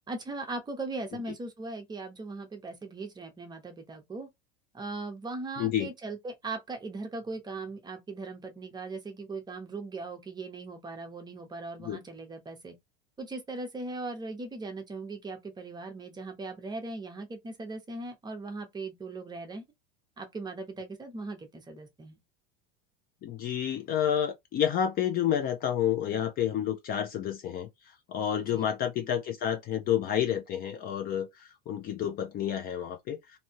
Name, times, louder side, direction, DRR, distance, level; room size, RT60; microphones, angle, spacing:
voice 1, 0.1-4.3 4.7-12.8 13.2-19.6 20.2-22.2 28.4-28.7, right 3 dB, 15° right, 0.8 m, -39 dB
voice 2, 5.6-5.9 11.8-12.0 23.2-27.7 28.1-33.2, left 10 dB, 30° left, 0.5 m, -29 dB
3.1 x 2.7 x 2.8 m
supercardioid pair, 140°, 29 cm